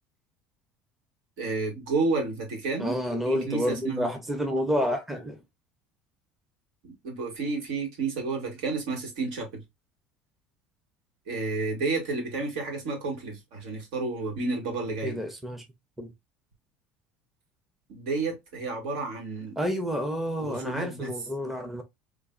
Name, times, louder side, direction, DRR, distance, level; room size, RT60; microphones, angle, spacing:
voice 1, 1.4-3.0 3.2-4.1 6.8-9.6 11.3-15.2 17.9-19.6 20.4-21.1, right 3 dB, 85° right, 2.0 m, -31 dB
voice 2, 2.8-5.4 15.0-15.6 16.0-16.1 19.6-21.8, equal, 5° right, 0.6 m, -29 dB
3.9 x 2.6 x 2.4 m
cardioid pair, 165°, 3 cm